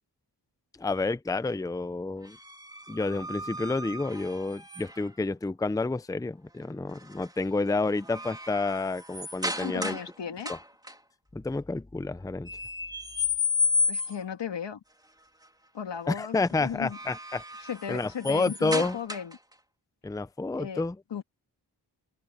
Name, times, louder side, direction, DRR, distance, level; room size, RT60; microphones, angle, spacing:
voice 1, 0.8-2.4 2.9-10.0 10.5-10.6 11.3-12.5 16.1-17.4 17.9-19.0 20.0-21.0, left 3 dB, 10° left, 0.6 m, -29 dB
sound 1, 2.3-5.2 6.9-7.3 7.7-10.1 10.4-10.9 12.5-14.4 16.7-19.5, left 3 dB, 10° right, 3.1 m, -33 dB
voice 2, 9.6-10.5 13.9-14.8 15.7-17.0 17.6-19.4 20.6-20.8 21.1-21.2, left 7 dB, 85° left, 2.3 m, -36 dB
cardioid pair, 75°, 42 cm